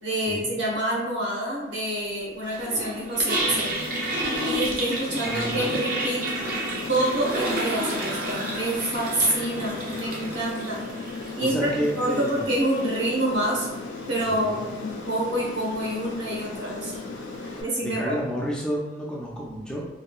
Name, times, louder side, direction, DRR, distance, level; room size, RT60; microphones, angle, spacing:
voice 1, 0.0-3.7 4.4-6.2 6.9-10.8 11.4-11.7 12.0-13.7 14.1-16.9 17.6-18.0, right 1 dB, 75° right, -5 dB, 0.9 m, -27 dB
Toilet flush, 2.5-17.7, right 1 dB, 45° right, 0.5 m, -33 dB
Bowed string instrument, 3.3-10.7, left 1 dB, 60° left, 0.7 m, -40 dB
Aircraft, 3.4-17.6, left 3 dB, 85° left, 0.4 m, -37 dB
voice 2, 5.2-5.7 11.4-12.4 14.2-14.6 17.4-19.9, equal, 5° left, -5 dB, 0.4 m, -30 dB
3.0 x 2.3 x 2.2 m, 1.1 s
head